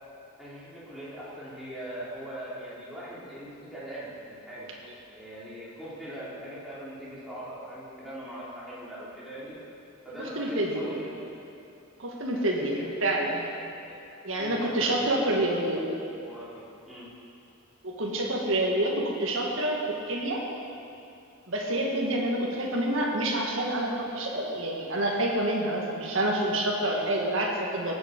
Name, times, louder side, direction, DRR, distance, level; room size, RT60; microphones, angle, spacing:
voice 1, 0.4-4.7 5.1-9.6 10.0-11.3 12.3-12.9 13.9-14.0 14.4-17.1, right 1 dB, ahead, -10 dB, 3.5 m, -41 dB
voice 2, 10.2-10.9 12.0-13.4 14.2-15.8 17.8-19.8 20.1-20.4 21.5-27.9, right 1 dB, 65° right, -2 dB, 1.8 m, -27 dB
17.5 x 8.1 x 5.3 m, 2.6 s
head